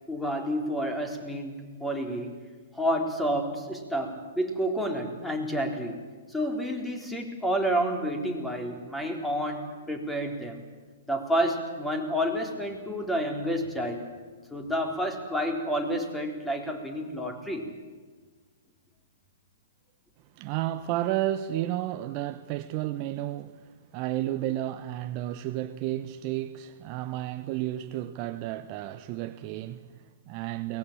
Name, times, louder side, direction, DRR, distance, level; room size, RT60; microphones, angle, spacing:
voice 1, 0.1-2.4 2.7-6.0 6.3-10.6 11.1-14.1 14.5-17.7, equal, 5° left, 3.9 m, -30 dB
voice 2, 20.4-30.8, right 14 dB, 40° right, 1.0 m, -32 dB
22.5 x 19.5 x 8.8 m
figure-of-eight pair, 120°, 0 cm